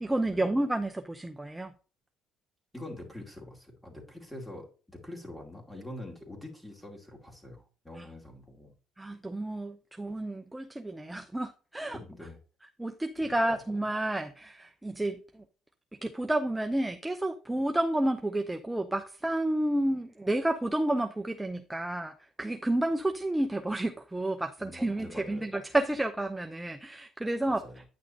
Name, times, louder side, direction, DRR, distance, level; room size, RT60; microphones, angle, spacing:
voice 1, 0.0-1.7 8.0-8.1 9.0-12.0 12.8-15.4 16.0-27.6, right 1 dB, 10° right, 0.6 m, -30 dB
voice 2, 2.7-8.7 11.9-12.4 13.5-13.6 24.6-25.4 27.4-27.8, left 1 dB, 5° left, 2.5 m, -45 dB
9.4 x 6.2 x 2.8 m
supercardioid pair, 75°, 0 cm